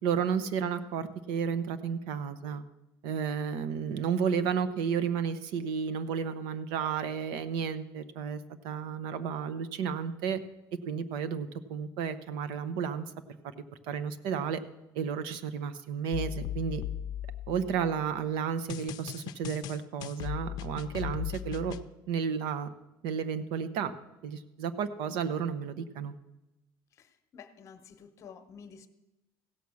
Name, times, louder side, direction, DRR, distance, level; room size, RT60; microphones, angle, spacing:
voice 1, 0.0-2.6 3.0-10.4 10.9-13.0 13.8-14.6 14.9-16.8 17.5-21.8 22.1-22.7 23.0-23.9 24.2-26.1, right 7 dB, 80° right, 12 dB, 0.9 m, -32 dB
sound 1, 16.1-18.0 18.7-21.8, left 11 dB, 60° left, 0.5 m, -37 dB
voice 2, 26.9-28.9, left 6 dB, 40° left, 9 dB, 0.9 m, -51 dB
16.0 x 7.1 x 6.3 m, 0.97 s
cardioid pair, 160°, 8 cm